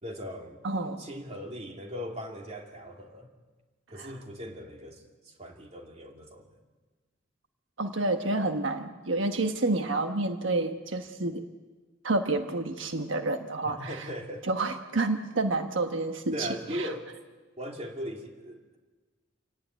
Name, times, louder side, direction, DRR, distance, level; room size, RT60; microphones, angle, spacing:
voice 1, 0.0-0.6 1.0-3.3 3.9-6.6 13.6-14.5 16.3-17.1 17.6-18.8, equal, 35° right, 2 dB, 2.9 m, -39 dB
voice 2, 0.6-1.0 3.9-4.1 7.8-11.4 12.0-14.1 14.5-16.9, right 2 dB, 80° right, 6 dB, 1.3 m, -29 dB
27.0 x 18.0 x 9.2 m, 1.3 s
head